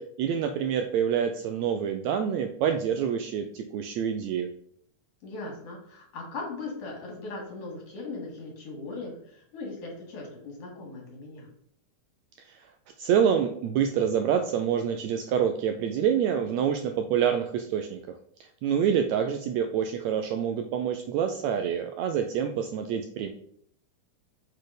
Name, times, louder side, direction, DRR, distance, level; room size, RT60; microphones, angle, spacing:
voice 1, 0.0-4.5 12.5-12.6 13.0-18.0 18.4-23.3, right 8 dB, 80° right, 6 dB, 1.6 m, -27 dB
voice 2, 5.2-11.5, left 3 dB, 55° left, -1 dB, 2.7 m, -39 dB
6.4 x 4.1 x 5.0 m, 0.65 s
omnidirectional pair, 3.6 m